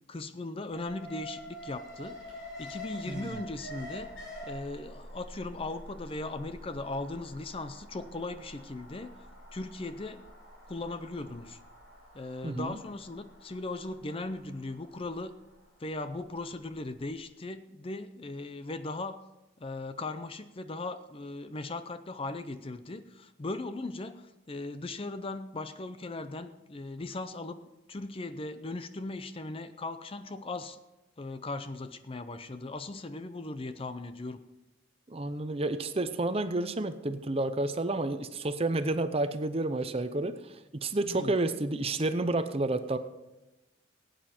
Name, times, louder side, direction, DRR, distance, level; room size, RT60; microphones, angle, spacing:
voice 1, 0.1-4.1 4.4-9.1 9.5-10.2 10.7-11.6 12.1-15.4 15.8-19.2 19.6-27.6 27.9-30.8 31.2-34.4 41.0-41.4, left 2 dB, 30° left, 11 dB, 0.5 m, -38 dB
Alarm, 0.7-16.8 17.1-17.2, equal, 75° left, 5.8 m, -47 dB
voice 2, 12.4-12.8 35.1-43.0, right 2 dB, 30° right, 10 dB, 0.7 m, -30 dB
16.5 x 9.1 x 4.4 m, 1.0 s
head